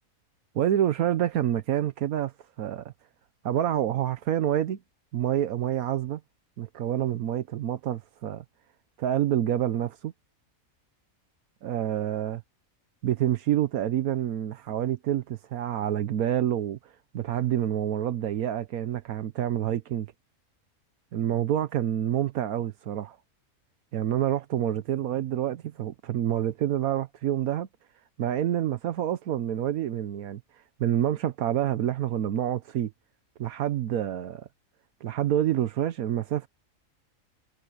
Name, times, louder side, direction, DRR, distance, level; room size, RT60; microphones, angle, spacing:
voice 1, 0.5-2.3 2.6-2.9 3.4-4.8 5.1-6.2 6.6-8.4 9.0-10.1 11.6-12.4 13.0-20.1 21.1-23.2 23.9-27.7 28.2-30.4 30.8-32.9 33.4-34.5 35.0-36.5, right 11 dB, 85° right, 1.3 m, -27 dB
omnidirectional pair, 1.5 m